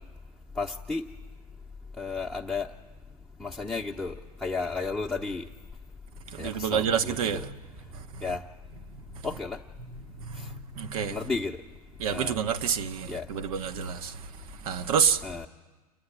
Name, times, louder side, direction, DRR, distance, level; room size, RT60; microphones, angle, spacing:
voice 1, 0.6-1.0 2.0-2.7 3.4-4.1 4.4-5.4 6.4-7.4 8.2-8.4 9.2-9.6 11.1-11.6 12.1-12.4 13.1-13.2 15.2-15.5, left 4 dB, 5° left, 0.8 m, -32 dB
voice 2, 6.4-7.5 10.8-11.1 12.0-14.1 14.7-15.2, right 7 dB, 65° right, 0.9 m, -27 dB
28.5 x 9.6 x 9.8 m
hypercardioid pair, 95°, 20 cm